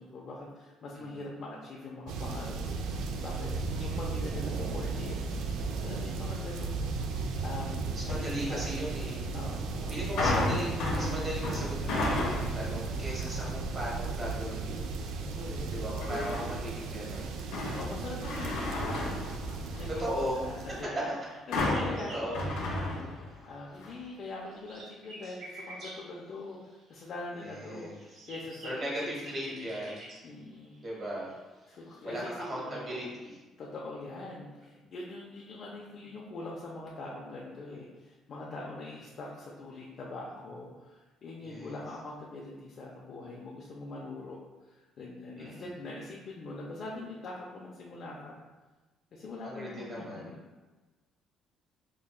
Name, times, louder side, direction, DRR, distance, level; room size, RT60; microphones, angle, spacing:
voice 1, 0.0-3.5 3.8-5.2 5.8-6.9 7.4-8.8 9.3-10.0 13.4-13.8 15.3-16.3 17.7-19.0 19.8-21.1 21.5-23.1 23.5-29.7 30.2-30.8 31.7-33.1 33.6-48.4 49.1-50.6, left 2 dB, 50° left, -4 dB, 0.4 m, -43 dB
sound 1, 2.1-20.8, right 4 dB, 85° right, 0.3 m, -35 dB
voice 2, 7.9-9.3 9.9-14.9 15.7-17.3 19.9-20.4 20.7-21.0 21.7-22.4 27.4-27.9 28.6-30.0 30.8-31.3 32.0-33.4 41.4-41.7 45.4-45.7 49.4-50.3, equal, 30° right, -4 dB, 1.2 m, -37 dB
sound 2, 10.2-12.7 13.2-13.6 16.0-16.7 17.1-20.0 21.5-23.5 23.8-23.9, left 2 dB, 90° left, 0.7 m, -32 dB
sound 3, 21.2-23.3 23.6-27.2 27.7-32.0, right 1 dB, 50° right, 1.1 m, -49 dB
5.0 x 2.2 x 2.3 m, 1.2 s
cardioid pair, 140°, 0 cm